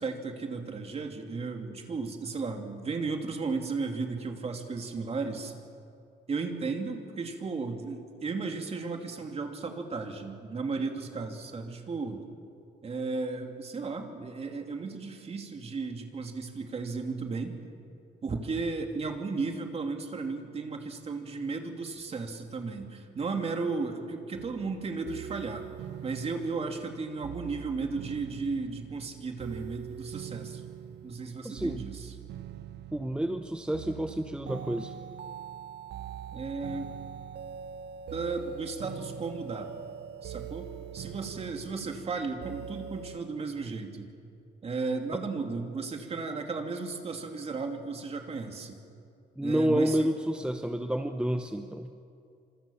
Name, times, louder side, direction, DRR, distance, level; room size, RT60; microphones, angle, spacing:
voice 1, 0.0-5.5 6.3-12.2 12.8-17.6 18.2-25.7 26.0-30.7 31.0-32.1 36.3-36.9 38.1-39.7 40.2-44.1 44.6-48.8 49.4-50.1, right 4 dB, 35° right, 4 dB, 2.7 m, -34 dB
sound 1, 24.3-43.2, right 9 dB, 75° right, 1.0 m, -43 dB
voice 2, 31.4-31.8 32.9-34.9 49.4-51.9, right 1 dB, 5° right, 6 dB, 0.9 m, -29 dB
26.5 x 26.5 x 7.1 m, 2.5 s
cardioid pair, 150°, 18 cm